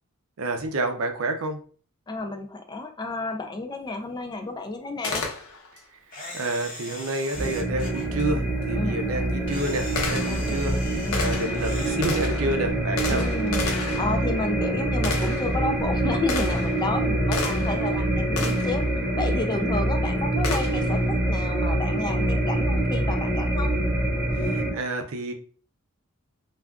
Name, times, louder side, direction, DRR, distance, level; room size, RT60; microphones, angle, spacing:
voice 1, 0.4-1.6 6.3-10.8 11.2-13.2 24.3-25.3, right 2 dB, 80° right, 5 dB, 0.5 m, -29 dB
voice 2, 2.1-5.3 8.7-9.2 10.3-10.7 11.1-11.4 13.1-13.6 14.0-18.8 19.2-21.0 21.2-23.7, left 3 dB, 20° left, 5 dB, 0.3 m, -31 dB
Gunshot gunfire, 5.0-5.8 8.2-8.3 9.0-17.9 18.4-18.8 20.4-21.0, left 3 dB, 85° left, 0.7 m, -33 dB
Camera, 6.1-8.1 9.5-12.0, left 1 dB, 40° left, 0.7 m, -40 dB
sound 1, 7.3-24.7, right 1 dB, 5° right, 0.9 m, -25 dB
2.4 x 2.3 x 3.5 m, 0.42 s
head